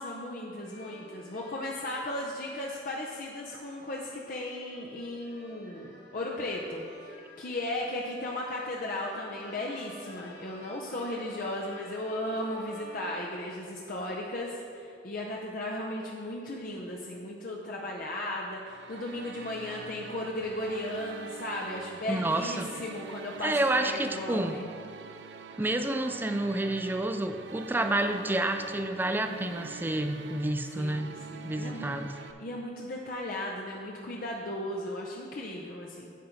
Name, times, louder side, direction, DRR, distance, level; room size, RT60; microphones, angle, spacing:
voice 1, 0.0-24.7 29.2-29.7 30.8-36.1, left 1 dB, 50° left, -2 dB, 0.7 m, -36 dB
sound 1, 0.6-14.3, left 1 dB, 80° left, 1.5 m, -53 dB
sound 2, 18.6-32.3, right 5 dB, 80° right, 0.4 m, -46 dB
voice 2, 22.1-22.7 23.4-24.6 25.6-31.1 31.4-32.1, right 1 dB, 10° right, 7 dB, 0.4 m, -29 dB
9.3 x 5.3 x 4.5 m, 2.4 s
head